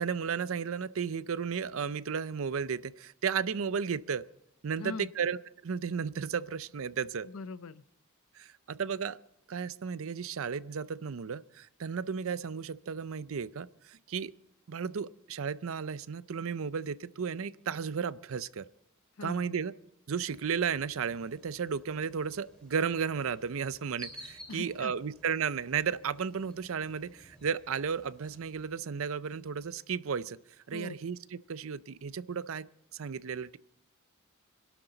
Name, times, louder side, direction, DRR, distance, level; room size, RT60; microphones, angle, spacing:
voice 1, 0.0-4.3 4.6-7.3 8.4-9.2 9.5-14.3 14.7-18.7 19.2-19.7 20.1-30.4 30.7-33.6, right 6 dB, 65° right, 17 dB, 0.5 m, -34 dB
voice 2, 4.8-5.1 7.2-7.8 19.2-19.5 24.5-24.9 30.7-30.9, left 4 dB, 70° left, 16 dB, 0.6 m, -41 dB
sound 1, 20.2-28.6, left 1 dB, 5° left, 3.9 m, -54 dB
25.5 x 12.0 x 3.9 m, 0.85 s
head